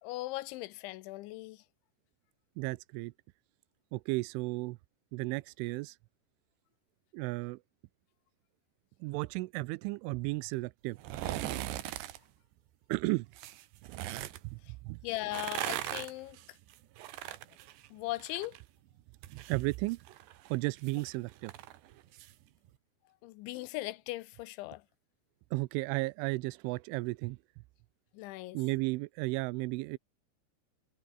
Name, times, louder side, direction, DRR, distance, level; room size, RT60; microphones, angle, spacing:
voice 1, 0.0-1.6 15.0-16.4 17.9-18.6 23.2-24.8 28.1-28.6, left 18 dB, 85° left, 3.1 m, -39 dB
voice 2, 2.6-3.1 3.9-4.8 5.1-6.0 7.1-7.6 9.0-11.0 12.9-13.3 14.4-15.0 19.3-20.0 20.5-21.5 25.5-27.4 28.5-30.0, right 23 dB, 90° right, 3.1 m, -34 dB
sound 1, 11.0-12.2 13.3-14.4 15.2-18.6 18.9-22.3 22.7-22.8, right 14 dB, 70° right, 3.4 m, -40 dB
omnidirectional pair, 5.4 m